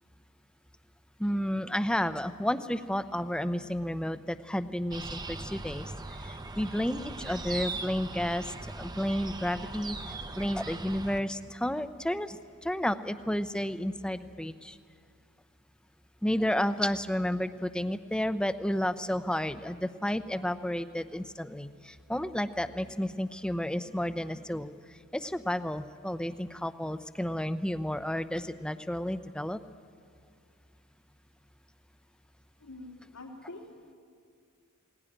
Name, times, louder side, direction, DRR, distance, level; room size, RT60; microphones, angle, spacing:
voice 1, 1.2-5.9 6.2-10.0 10.4-14.8 16.2-24.7 25.1-29.6, equal, 5° left, 12 dB, 0.6 m, -31 dB
sound 1, 4.9-11.2, right 2 dB, 20° right, 0.8 m, -40 dB
voice 2, 32.6-33.9, left 2 dB, 90° left, -1 dB, 3.6 m, -46 dB
20.5 x 18.5 x 10.0 m, 2.2 s
head